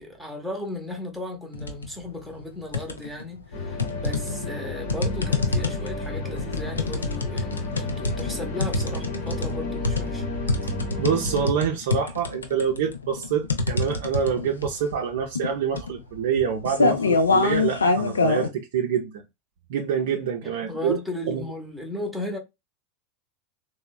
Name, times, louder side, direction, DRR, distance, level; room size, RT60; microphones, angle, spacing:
voice 1, 0.0-10.3 20.4-22.4, left 1 dB, ahead, 0.7 m, -35 dB
sound 1, 1.5-1.9 2.3-3.2 3.8-18.5, left 3 dB, 90° left, 0.4 m, -25 dB
sound 2, 3.5-11.5, left 2 dB, 70° left, 0.9 m, -32 dB
voice 2, 11.0-19.2 19.7-21.0 21.3-21.4, right 7 dB, 70° right, 0.4 m, -26 dB
3.1 x 2.0 x 2.2 m
hypercardioid pair, 90°, 0 cm